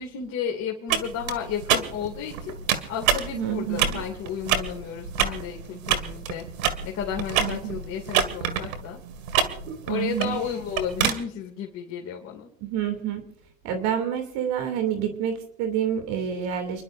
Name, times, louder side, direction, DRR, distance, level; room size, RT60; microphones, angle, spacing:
voice 1, 0.0-2.5 2.9-6.4 6.8-9.0 9.9-12.5, left 8 dB, 40° left, -1 dB, 2.7 m, -33 dB
sound 1, 0.9-11.1, right 8 dB, 80° right, 2.1 m, -28 dB
voice 2, 3.3-4.0 7.4-7.7 9.9-10.4 12.6-13.2 13.6-16.8, right 9 dB, 60° right, 7 dB, 2.9 m, -28 dB
30.0 x 11.5 x 2.7 m, 0.70 s
supercardioid pair, 115°, 41 cm